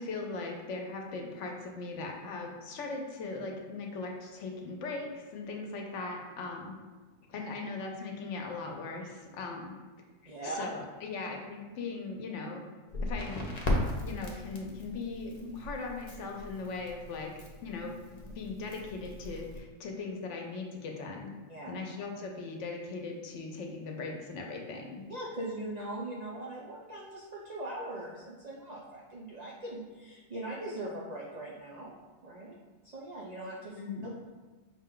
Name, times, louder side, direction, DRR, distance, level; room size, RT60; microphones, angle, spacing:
voice 1, 0.0-6.8 7.3-9.7 10.2-12.7 13.0-13.5 14.0-17.3 17.6-21.3 21.7-25.0 33.8-34.1, left 3 dB, 70° left, 1 dB, 0.9 m, -39 dB
voice 2, 10.3-10.7 18.2-18.4 21.5-21.7 25.1-31.9 32.2-32.6 32.8-34.1, right 1 dB, 80° right, -3 dB, 0.3 m, -40 dB
Crackle, 12.9-19.6, left 1 dB, 45° left, 0.5 m, -37 dB
5.3 x 2.2 x 3.7 m, 1.3 s
omnidirectional pair, 1.4 m